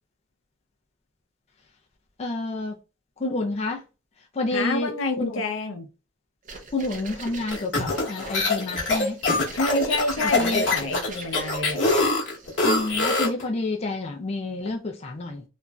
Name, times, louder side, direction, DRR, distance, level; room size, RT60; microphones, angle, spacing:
voice 1, 2.2-2.8 3.2-3.8 4.3-5.4 6.7-9.2 10.2-10.7 12.6-15.4, left 2 dB, 30° left, 0.4 m, -29 dB
voice 2, 4.5-5.9 9.5-11.9, left 2 dB, 80° left, 0.6 m, -28 dB
sound 1, 6.4-12.9, right 3 dB, 40° right, 0.5 m, -41 dB
sound 2, 7.5-13.4, left 3 dB, 60° left, 0.9 m, -24 dB
3.0 x 2.5 x 2.2 m
head